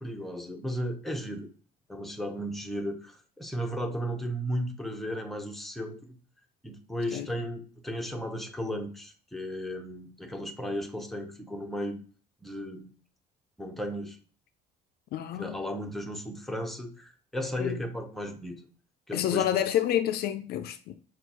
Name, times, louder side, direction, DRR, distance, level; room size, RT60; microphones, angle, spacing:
voice 1, 0.0-1.5 1.9-6.0 6.6-12.0 12.4-12.8 13.6-14.2 15.3-18.6 19.1-19.6, equal, ahead, 0.8 m, -35 dB
voice 2, 15.1-15.6 17.6-17.8 19.1-20.9, left 11 dB, 70° left, 0.4 m, -28 dB
6.2 x 2.3 x 2.9 m
cardioid pair, 110°, 17 cm